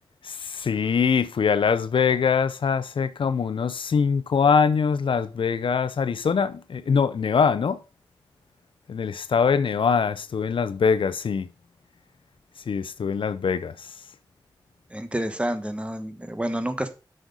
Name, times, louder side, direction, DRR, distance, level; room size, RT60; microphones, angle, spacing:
voice 1, 0.3-7.8 8.9-11.5 12.7-13.7, left 6 dB, 80° left, 0.5 m, -23 dB
voice 2, 14.9-16.9, right 1 dB, 15° right, 1.2 m, -29 dB
7.8 x 6.4 x 5.2 m
wide cardioid pair, 80°, 9 cm